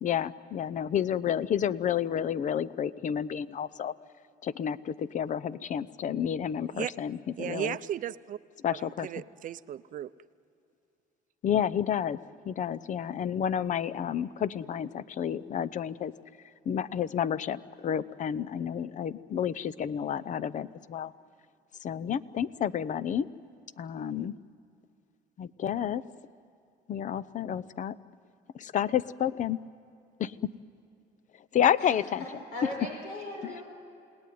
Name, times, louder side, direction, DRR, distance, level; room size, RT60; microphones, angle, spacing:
voice 1, 0.0-3.9 4.4-7.8 8.6-9.1 11.4-12.2 12.5-16.1 16.7-21.1 21.8-23.3 23.8-24.3 25.4-26.0 26.9-28.0 28.5-29.6 30.2-30.5 31.5-32.3 33.4-33.5, left 9 dB, 45° left, 18 dB, 0.7 m, -30 dB
voice 2, 7.4-8.4 8.7-10.1, right 11 dB, 50° right, 15 dB, 0.6 m, -35 dB
voice 3, 32.2-33.6, left 1 dB, 85° left, 1 dB, 6.3 m, -38 dB
29.0 x 18.5 x 9.4 m, 2.6 s
cardioid pair, 110°, 17 cm